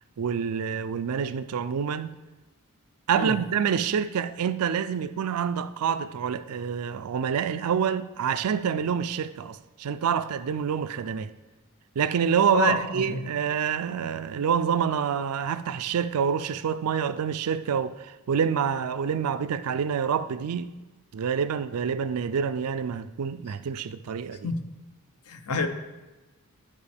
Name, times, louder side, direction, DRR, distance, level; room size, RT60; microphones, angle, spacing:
voice 1, 0.2-2.2 3.1-11.3 12.0-20.7 21.1-24.5, right 7 dB, 80° right, 0.4 m, -27 dB
voice 2, 12.5-13.2 24.4-24.6 25.3-25.7, left 3 dB, 80° left, 0.7 m, -27 dB
12.0 x 5.1 x 3.4 m
head